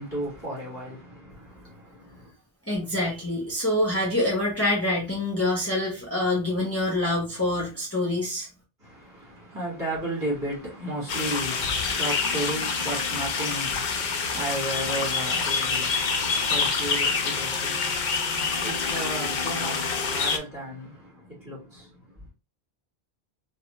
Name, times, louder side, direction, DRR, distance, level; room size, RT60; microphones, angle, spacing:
voice 1, 0.0-2.3 8.8-22.2, right 1 dB, 20° right, 2.0 m, -34 dB
voice 2, 2.7-8.5, left 1 dB, 15° left, 0.9 m, -26 dB
sound 1, 11.1-20.4, left 5 dB, 60° left, 0.6 m, -27 dB
3.2 x 2.2 x 3.0 m
omnidirectional pair, 1.0 m